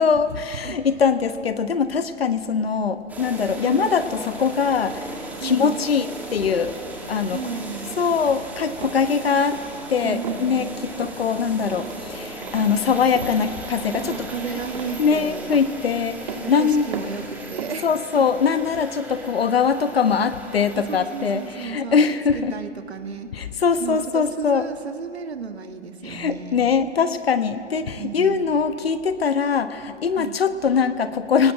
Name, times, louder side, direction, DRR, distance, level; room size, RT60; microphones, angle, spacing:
voice 1, 0.0-6.7 7.1-7.4 8.0-9.6 9.9-10.7 11.0-14.3 15.0-16.9 17.8-22.5 23.3-24.6 26.0-31.5, left 6 dB, 55° left, 11 dB, 1.2 m, -22 dB
sound 1, 3.1-21.7, right 2 dB, 5° right, 1.9 m, -37 dB
voice 2, 5.4-5.8 7.3-8.2 10.0-10.8 14.0-15.5 16.3-17.2 17.5-17.9 18.1-18.2 20.9-22.0 22.5-23.5 23.8-26.7 27.9-28.4 30.2-30.4, right 6 dB, 65° right, 6 dB, 2.0 m, -33 dB
sound 2, 8.8-9.1 9.5-9.8 10.2-10.5 11.0-11.3 11.7-12.0 12.4-12.7 13.1-13.4 13.9-14.3 14.7-15.1 15.5-15.8 16.3-16.5 16.9-17.3 17.6-17.9, right 5 dB, 45° right, 2.0 m, -36 dB
30.0 x 19.0 x 7.7 m, 2.4 s
figure-of-eight pair, 140°, 35 cm